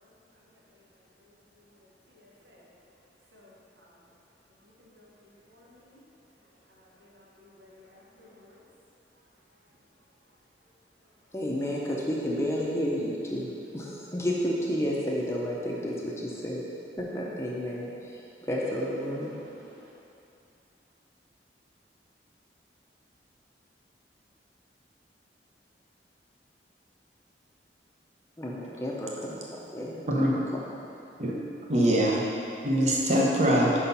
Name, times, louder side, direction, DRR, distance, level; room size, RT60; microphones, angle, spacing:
voice 1, 2.2-2.6 3.3-3.9 4.8-5.1 5.5-6.0 7.0-8.6 18.8-18.9 19.2-19.9, left 1 dB, 80° right, -5 dB, 1.3 m, -50 dB
voice 2, 11.3-16.6 17.0-17.9 18.4-19.3 28.4-29.4 29.7-30.3 30.5-30.7, equal, 15° left, -4 dB, 0.6 m, -31 dB
voice 3, 31.7-32.2 32.6-33.7, equal, 40° right, -3 dB, 0.8 m, -23 dB
5.5 x 4.3 x 5.4 m, 2.8 s
head